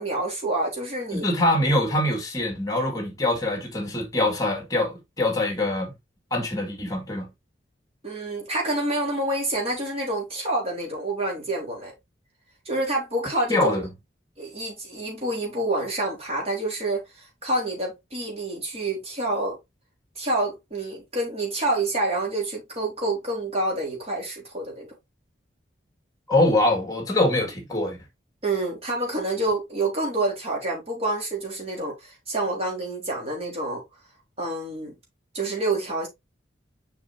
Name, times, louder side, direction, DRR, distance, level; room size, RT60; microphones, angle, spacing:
voice 1, 0.0-1.2 8.0-11.9 12.7-13.8 14.4-19.6 20.2-24.9 28.4-33.8 34.4-34.9 35.3-36.1, right 2 dB, 35° right, 3.8 m, -28 dB
voice 2, 1.1-5.9 6.3-7.3 13.5-13.9 26.3-28.0, left 1 dB, 20° left, 2.1 m, -24 dB
7.0 x 5.7 x 2.7 m
head